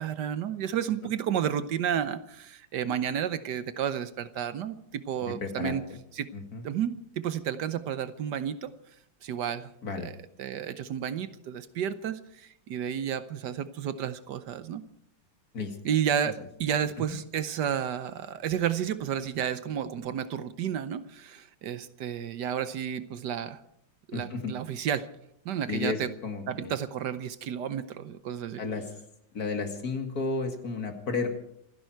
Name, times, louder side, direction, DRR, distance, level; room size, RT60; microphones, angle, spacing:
voice 1, 0.0-5.8 6.1-6.3 6.6-8.7 9.2-9.7 10.0-10.1 10.4-14.8 15.8-23.6 24.1-25.1 25.4-26.1 26.5-28.6, right 9 dB, 70° right, 13 dB, 1.3 m, -31 dB
voice 2, 5.3-5.8 6.3-6.6 9.8-10.1 15.5-15.8 16.2-16.3 17.1-17.2 24.1-24.5 25.7-26.7 28.6-28.9 29.3-31.3, left 4 dB, 55° left, 5 dB, 2.5 m, -32 dB
27.5 x 11.0 x 4.6 m, 0.72 s
omnidirectional pair, 2.0 m